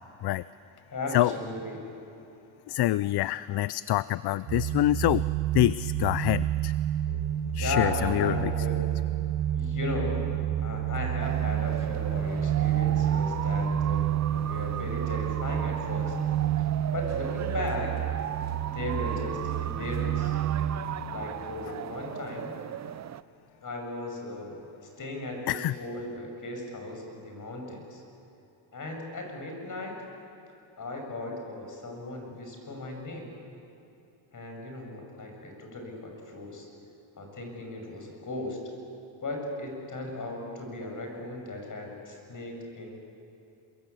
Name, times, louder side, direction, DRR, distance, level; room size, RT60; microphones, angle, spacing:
voice 1, 0.9-1.8 7.1-7.2 7.5-8.8 9.5-10.2 10.6-16.1 16.9-18.0 18.7-20.4 21.1-22.5 23.6-24.7 25.0-28.0 28.7-30.0 30.8-33.3 34.3-36.7 37.2-38.6 39.2-43.0, left 2 dB, 40° left, 2 dB, 7.1 m, -36 dB
voice 2, 2.7-5.2 5.5-6.7 7.5-8.5 25.5-25.7, left 15 dB, 55° left, 17 dB, 0.5 m, -26 dB
sound 1, 4.5-21.0, right 11 dB, 60° right, 1.8 m, -29 dB
sound 2, 11.2-23.2, right 10 dB, 35° right, 0.5 m, -38 dB
27.5 x 23.0 x 8.5 m, 2.7 s
cardioid pair, 100°, 47 cm